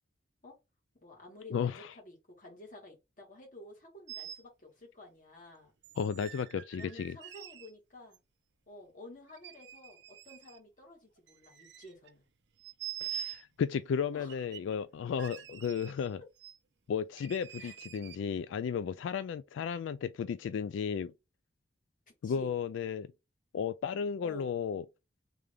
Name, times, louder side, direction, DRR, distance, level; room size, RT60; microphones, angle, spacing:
voice 1, 0.9-5.7 6.7-8.2 8.7-12.3 14.1-14.4 17.6-17.8 22.1-22.5 24.2-24.5, left 1 dB, 45° left, 2.0 m, -52 dB
voice 2, 1.5-1.9 6.0-7.2 13.0-16.2 16.9-21.1 22.2-23.1 23.5-24.8, left 7 dB, 85° left, 0.3 m, -34 dB
sound 1, 4.1-4.4 5.8-7.7 8.1-8.2 9.3-10.6 11.2-12.1 12.6-13.4 14.3-14.7 15.2-16.1 16.4-16.6 17.2-18.2, right 11 dB, 70° right, 0.6 m, -45 dB
3.4 x 3.4 x 3.7 m
head